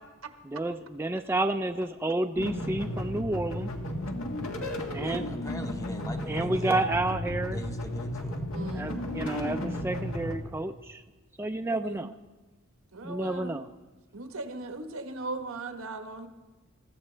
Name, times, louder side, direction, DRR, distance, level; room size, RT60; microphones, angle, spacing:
voice 1, 0.5-3.7 4.9-5.2 6.3-7.6 8.7-11.0 11.4-12.1 13.0-13.7, right 2 dB, 10° right, 6 dB, 0.4 m, -30 dB
sound 1, 2.4-10.4, left 1 dB, 80° left, 1.8 m, -34 dB
voice 2, 5.0-6.9 7.5-8.4, left 1 dB, 15° left, 5 dB, 0.8 m, -41 dB
voice 3, 6.5-6.9 8.5-8.9 11.7-12.1 12.9-13.6 14.1-16.3, right 2 dB, 90° right, 6 dB, 1.3 m, -38 dB
21.5 x 14.5 x 3.3 m, 1.2 s
head